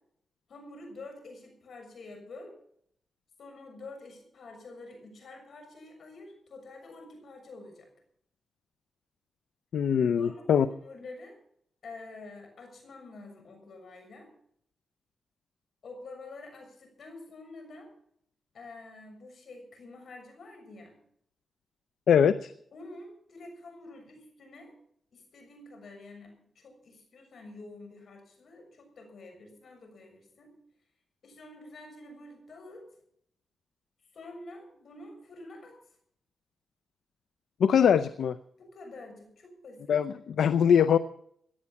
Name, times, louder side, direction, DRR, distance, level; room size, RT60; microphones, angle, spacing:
voice 1, 0.5-2.5 3.4-7.9 10.2-11.4 11.8-14.3 15.8-17.9 18.5-21.0 22.7-24.7 25.1-30.5 31.2-32.8 34.1-35.8 38.6-39.9, left 2 dB, 70° left, 5 dB, 6.7 m, -48 dB
voice 2, 9.7-10.7 22.1-22.5 37.6-38.4 39.9-41.0, left 8 dB, 85° left, 13 dB, 0.5 m, -22 dB
17.5 x 11.0 x 5.9 m, 0.68 s
cardioid pair, 60°, 0 cm